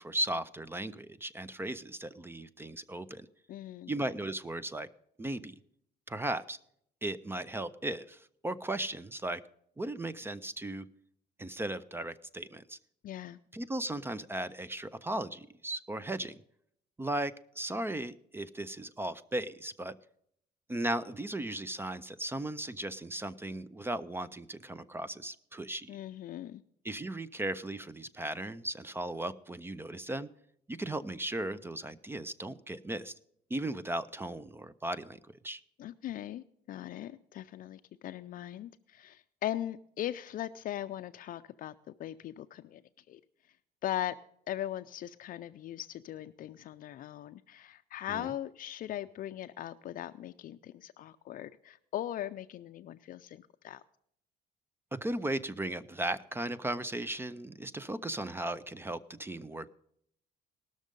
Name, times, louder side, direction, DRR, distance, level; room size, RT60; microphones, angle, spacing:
voice 1, 0.0-3.3 3.9-4.9 5.2-5.6 6.1-6.6 7.0-9.4 9.8-10.9 11.4-12.8 13.5-16.4 17.0-19.9 20.7-26.0 26.8-30.3 30.7-33.1 33.5-35.2 35.4-35.6 48.1-48.3 54.9-59.7, right 1 dB, 15° right, 17 dB, 0.4 m, -36 dB
voice 2, 3.5-3.9 13.0-13.4 25.9-26.6 35.8-41.7 42.0-43.2 43.8-44.2 44.5-53.8, left 12 dB, 55° left, 10 dB, 0.4 m, -39 dB
18.5 x 6.4 x 5.2 m, 0.71 s
cardioid pair, 110°, 17 cm